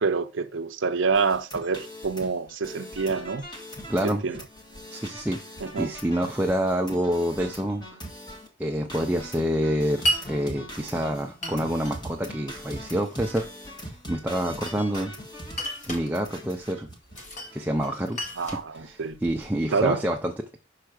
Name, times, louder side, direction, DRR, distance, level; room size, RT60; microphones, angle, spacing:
voice 1, 0.0-3.4 4.0-4.5 5.6-6.0 14.8-14.9 18.4-19.2 19.7-20.1, right 4 dB, 70° right, 0.7 m, -27 dB
sound 1, 1.1-8.5 8.9-18.8 19.1-19.2 19.4-19.7, equal, 20° left, 1.7 m, -42 dB
voice 2, 3.9-4.2 4.9-5.4 5.8-7.8 8.6-13.5 13.7-15.1 15.9-16.9 17.5-18.2 18.5-20.6, equal, 10° right, 0.5 m, -27 dB
Glass, 10.1-10.3 11.4-12.0 12.8-13.5 14.4-15.1 15.5-16.1 17.1-17.6 17.8-19.5, right 1 dB, 35° left, 1.6 m, -32 dB
5.8 x 4.5 x 6.5 m
head